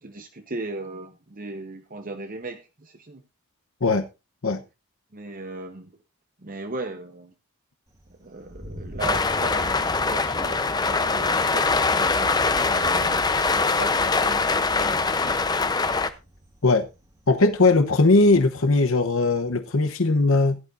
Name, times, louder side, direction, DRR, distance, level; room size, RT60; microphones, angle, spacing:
voice 1, 0.0-3.2 5.1-5.9 6.4-7.3 8.1-15.5, right 2 dB, 40° right, 0.9 m, -37 dB
Thunder, 7.9-18.5, equal, 15° right, 2.2 m, -45 dB
sound 1, 9.0-16.1, left 4 dB, 20° left, 0.7 m, -23 dB
voice 2, 17.3-20.6, left 3 dB, 65° left, 0.9 m, -19 dB
16.0 x 11.0 x 2.6 m
head